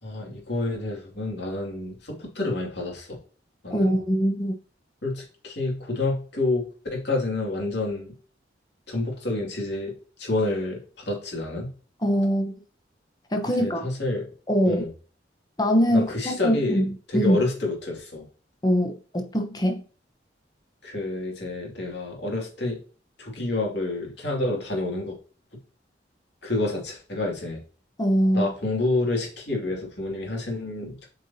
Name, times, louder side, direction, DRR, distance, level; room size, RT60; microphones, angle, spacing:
voice 1, 0.0-3.2 3.6-4.0 5.0-8.1 8.9-9.9 10.2-11.7 13.6-14.2 14.6-14.9 15.9-16.8 17.1-18.3 20.8-22.8 23.2-25.2 26.4-27.6 28.3-31.1, left 2 dB, 65° left, 2.5 m, -28 dB
voice 2, 3.7-4.5 12.0-12.5 13.3-13.9 14.5-14.9 15.6-17.4 18.6-19.8 28.0-28.5, equal, 20° left, 1.0 m, -23 dB
8.0 x 4.9 x 2.8 m
head